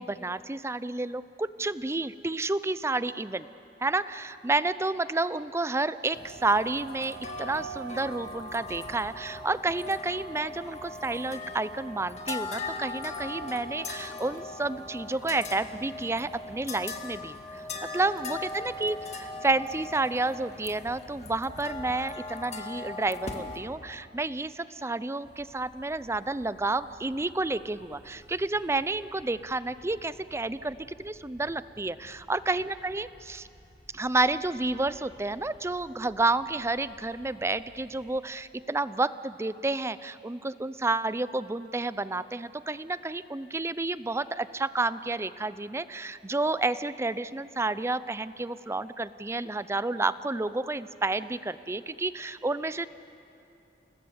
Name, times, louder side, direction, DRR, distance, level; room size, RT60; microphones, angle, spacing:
voice 1, 0.0-3.5 3.8-17.6 17.9-33.5 33.9-52.9, right 2 dB, 15° right, 15 dB, 0.5 m, -30 dB
sound 1, 6.1-23.6, left 2 dB, 40° left, 2.0 m, -39 dB
sound 2, 25.2-38.1, equal, 90° left, 5.4 m, -57 dB
29.0 x 19.5 x 8.0 m, 2.9 s
head